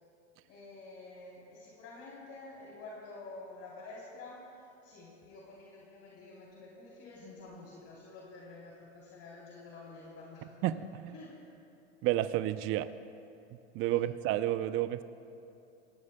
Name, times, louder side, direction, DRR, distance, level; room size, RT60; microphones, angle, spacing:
voice 1, 0.5-10.8 11.1-11.4 12.7-12.8 13.9-14.1, left 3 dB, 40° left, -5 dB, 3.4 m, -49 dB
voice 2, 10.6-11.1 12.0-12.9 13.7-15.0, right 14 dB, 35° right, 13 dB, 0.6 m, -30 dB
26.5 x 18.0 x 2.2 m, 2.8 s
hypercardioid pair, 100°, 35 cm